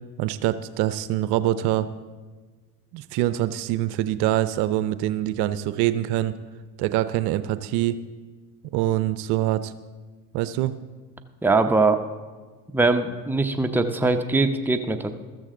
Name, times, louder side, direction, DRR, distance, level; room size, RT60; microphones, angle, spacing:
voice 1, 0.2-1.9 2.9-6.4 6.8-8.0 8.7-9.7 10.3-10.8, right 13 dB, 55° right, 13 dB, 0.7 m, -24 dB
voice 2, 11.4-12.0 12.7-15.1, right 3 dB, 5° right, 5 dB, 0.8 m, -21 dB
15.0 x 13.5 x 3.8 m, 1.4 s
hypercardioid pair, 80°, 47 cm